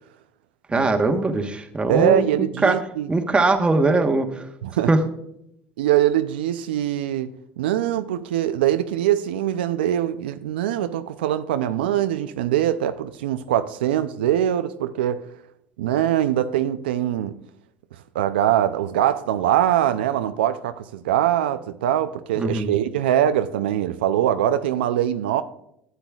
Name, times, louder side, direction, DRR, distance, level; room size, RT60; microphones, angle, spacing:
voice 1, 0.7-2.2 2.6-2.7 3.1-4.4 4.9-5.0 22.4-22.8, right 3 dB, 20° right, 1.2 m, -20 dB
voice 2, 1.9-3.1 4.6-4.9 5.8-15.2 15.8-17.4 18.1-25.4, right 11 dB, 90° right, 0.4 m, -22 dB
12.0 x 8.0 x 2.3 m
hypercardioid pair, 80°, 5 cm